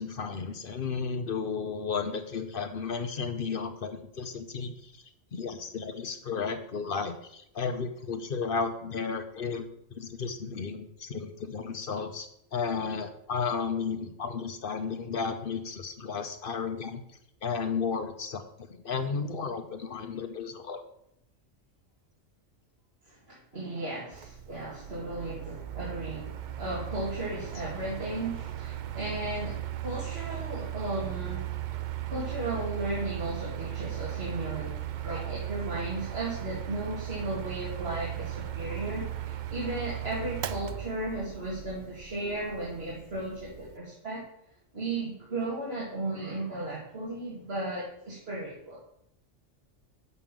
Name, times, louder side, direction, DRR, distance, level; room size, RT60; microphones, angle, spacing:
voice 1, 0.0-5.0 5.3-17.0 17.4-18.4 18.7-20.8, left 5 dB, 50° left, 8 dB, 0.8 m, -33 dB
voice 2, 23.1-31.4 32.1-44.2 44.7-48.8, right 2 dB, 55° right, -6 dB, 2.2 m, -35 dB
Mechanical fan, 24.1-43.8, right 12 dB, 70° right, 0.4 m, -37 dB
6.7 x 5.5 x 7.3 m, 0.74 s
omnidirectional pair, 1.3 m